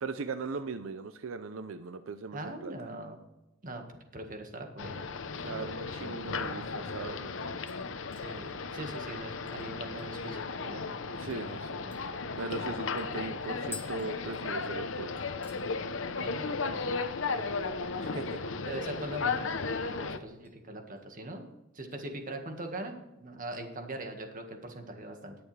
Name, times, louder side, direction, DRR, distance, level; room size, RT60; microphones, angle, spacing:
voice 1, 0.0-2.7 5.4-7.6 11.2-12.1 12.4-15.2 18.0-18.4, right 4 dB, 80° right, 10 dB, 0.5 m, -39 dB
voice 2, 2.3-3.2 3.6-3.8 4.1-5.1 8.2-10.9 16.2-17.0 17.3-17.5 18.6-21.5 21.7-25.4, right 1 dB, 45° right, 4 dB, 1.7 m, -41 dB
sound 1, 4.8-20.2, left 4 dB, 70° left, 0.8 m, -35 dB
sound 2, 7.7-10.5 10.8-10.9 11.3-11.5 11.9-14.9 15.2-15.7 16.0-16.4 16.7-16.8 18.9-19.5 19.8-20.6 21.0-21.2 21.8-22.7 23.1-23.2, left 5 dB, 10° left, 1.7 m, -52 dB
19.5 x 6.9 x 3.3 m, 0.97 s
head